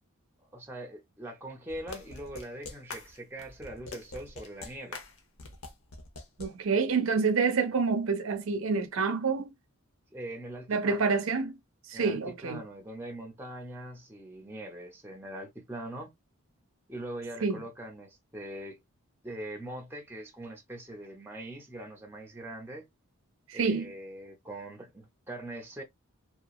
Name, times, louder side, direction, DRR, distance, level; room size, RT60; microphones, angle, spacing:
voice 1, 0.4-5.0 10.1-11.1 11.9-16.1 16.9-18.8 19.2-22.9 23.5-25.8, right 1 dB, 10° right, 0.6 m, -42 dB
sound 1, 1.7-6.5, left 3 dB, 70° left, 0.7 m, -44 dB
voice 2, 6.4-9.5 10.7-11.6 11.9-12.6 17.4-17.6 23.5-23.9, right 4 dB, 60° right, 0.5 m, -27 dB
2.9 x 2.3 x 2.3 m
head